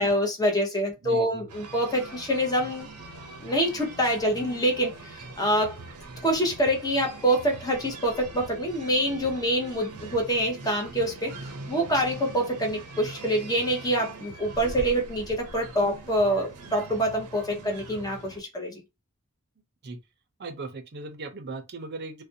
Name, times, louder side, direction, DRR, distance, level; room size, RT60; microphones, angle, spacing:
voice 1, 0.0-2.9 3.4-5.8 6.2-18.8, equal, 15° left, 0.8 m, -26 dB
voice 2, 1.0-1.5 19.8-20.0 20.4-22.2, right 3 dB, 45° right, 0.6 m, -38 dB
sound 1, 1.5-18.4, right 3 dB, 90° right, 0.6 m, -42 dB
2.4 x 2.2 x 2.7 m
head